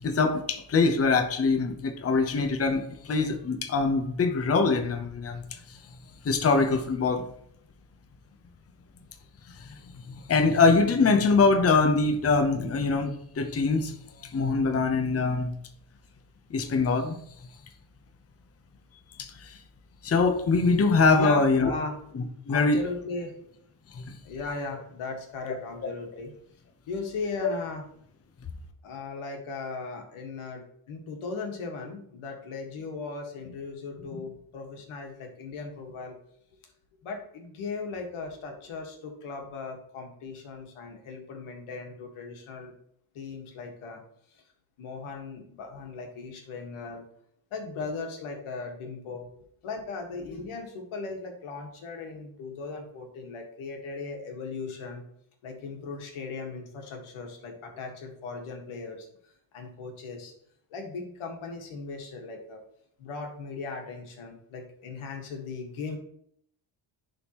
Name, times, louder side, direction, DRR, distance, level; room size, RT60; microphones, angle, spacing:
voice 1, 0.0-5.4 6.2-7.2 9.6-9.7 10.1-13.9 14.2-15.5 16.5-17.2 19.2-19.6 20.0-21.7 22.1-22.8 23.9-24.2, left 4 dB, 30° left, 0.8 m, -23 dB
voice 2, 21.1-21.9 22.5-23.4 24.2-26.3 26.9-27.8 28.8-36.1 37.0-42.7 43.2-44.0 44.3-44.4 44.8-47.0 47.5-49.3 49.6-55.0 55.4-59.1 59.5-60.3 60.7-62.6 63.0-66.0, left 4 dB, 85° left, 1.7 m, -37 dB
10.5 x 3.7 x 3.0 m
cardioid pair, 110°, 49 cm